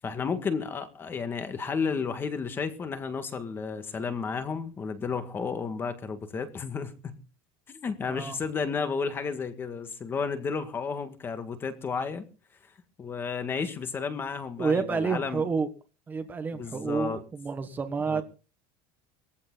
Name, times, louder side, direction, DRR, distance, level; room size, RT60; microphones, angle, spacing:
voice 1, 0.0-7.2 7.7-12.2 13.0-15.5 16.5-17.2 18.1-18.2, left 5 dB, 15° left, 1.9 m, -32 dB
voice 2, 8.1-8.4 14.6-15.7 16.1-18.2, right 5 dB, 15° right, 1.4 m, -29 dB
20.0 x 15.0 x 4.1 m
cardioid pair, 175°, 13 cm